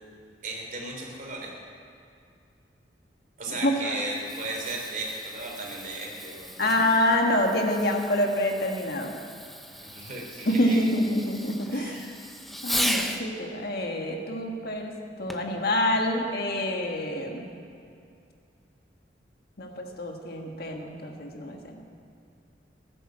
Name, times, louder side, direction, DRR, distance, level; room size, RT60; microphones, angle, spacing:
voice 1, 0.4-1.5 3.4-7.0 9.7-10.9 11.7-12.1, right 2 dB, 50° right, -1 dB, 3.7 m, -36 dB
voice 2, 3.5-4.0 6.6-9.1 10.4-12.1 12.6-17.5 19.6-22.0, left 1 dB, 60° left, 2 dB, 1.7 m, -27 dB
Fireworks, 4.0-13.3 15.3-15.6 16.3-16.4, equal, ahead, 0.8 m, -36 dB
16.0 x 11.0 x 7.6 m, 2.5 s
head